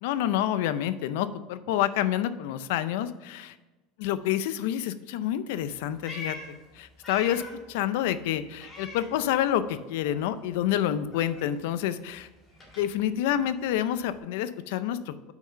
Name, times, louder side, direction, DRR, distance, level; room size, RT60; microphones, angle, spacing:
voice 1, 0.0-3.5 4.0-7.4 7.7-12.3 12.8-15.3, left 11 dB, 75° left, 13 dB, 0.5 m, -28 dB
Meow, 5.6-7.7 8.0-9.7 10.0-14.2, left 2 dB, 20° left, 2.0 m, -45 dB
5.9 x 5.7 x 5.6 m, 1.2 s
supercardioid pair, 135°, 0 cm